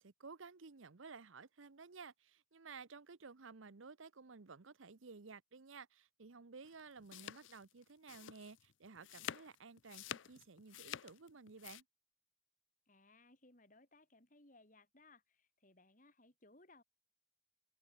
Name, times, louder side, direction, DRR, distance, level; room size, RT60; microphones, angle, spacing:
voice 1, 0.0-11.8, right 4 dB, 85° right, 0.9 m, -55 dB
sound 1, 6.6-11.8, left 9 dB, 75° left, 0.5 m, -49 dB
voice 2, 12.9-16.8, left 2 dB, 40° left, 3.6 m, -65 dB
open air
head